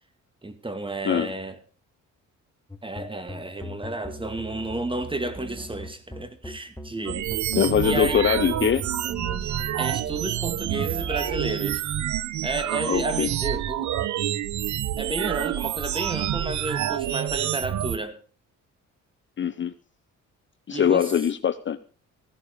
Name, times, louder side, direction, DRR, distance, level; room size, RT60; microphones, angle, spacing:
voice 1, 0.4-1.6 2.8-7.3 7.8-8.2 9.4-11.8 12.4-13.9 15.0-18.2 20.7-21.1, right 2 dB, 15° right, 2.2 m, -32 dB
sound 1, 2.7-11.6, equal, 10° left, 1.6 m, -39 dB
sound 2, 7.1-18.0, right 11 dB, 70° right, 0.9 m, -28 dB
voice 2, 7.6-8.8 12.9-13.3 19.4-19.7 20.7-21.8, left 8 dB, 40° left, 0.7 m, -22 dB
15.5 x 11.5 x 5.0 m
cardioid pair, 90°, 30 cm